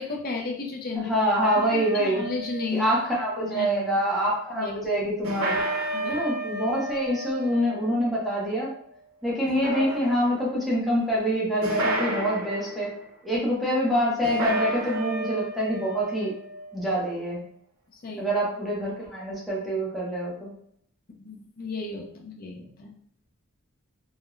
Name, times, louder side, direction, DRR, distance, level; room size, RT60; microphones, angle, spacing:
voice 1, 0.0-1.1 1.6-2.9 3.4-4.0 4.5-4.9 5.9-6.2 17.9-18.2 21.2-22.9, left 3 dB, 45° left, 1 dB, 0.5 m, -34 dB
voice 2, 1.0-2.2 2.7-5.6 6.1-8.7 9.2-12.9 13.2-16.3 16.7-17.4 18.2-20.5, equal, ahead, -6 dB, 0.7 m, -26 dB
sound 1, 1.4-3.5 5.2-9.0 9.5-10.5 11.6-12.7 14.2-16.9, right 1 dB, 75° right, 0.6 m, -32 dB
2.3 x 2.1 x 3.0 m, 0.67 s
head